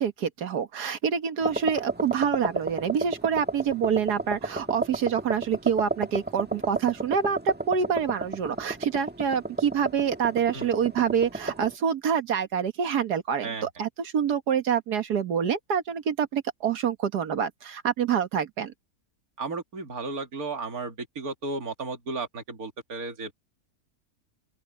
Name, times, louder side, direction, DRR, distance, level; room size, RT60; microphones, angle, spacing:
voice 1, 0.0-18.7, right 7 dB, 85° right, 1.9 m, -26 dB
sound 1, 1.4-11.7, right 2 dB, 5° right, 1.2 m, -32 dB
voice 2, 19.4-23.3, right 3 dB, 65° right, 2.8 m, -34 dB
open air
omnidirectional pair, 1.7 m